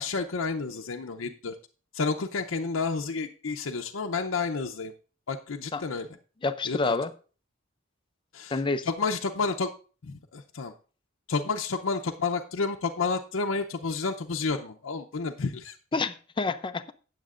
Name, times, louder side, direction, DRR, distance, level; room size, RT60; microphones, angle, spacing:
voice 1, 0.0-1.5 1.9-4.9 5.3-6.1 6.7-6.9 8.3-9.7 10.0-10.7 11.3-15.7, left 4 dB, 80° left, 0.6 m, -30 dB
voice 2, 6.4-7.1 8.5-8.9 15.9-16.9, left 3 dB, 25° left, 0.4 m, -28 dB
17.0 x 7.4 x 2.5 m
head